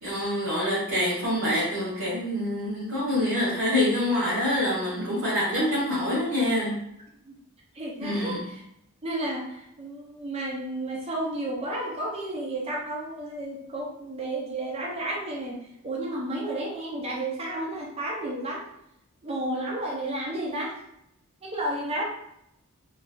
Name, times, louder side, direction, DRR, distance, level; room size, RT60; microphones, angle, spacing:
voice 1, 0.0-6.8 8.0-8.4, left 1 dB, 75° right, -11 dB, 1.3 m, -26 dB
voice 2, 7.7-8.6 9.0-15.6 15.8-18.6 19.2-20.7 21.4-22.0, right 1 dB, 25° right, -3 dB, 0.6 m, -32 dB
3.1 x 2.3 x 2.5 m, 0.78 s
head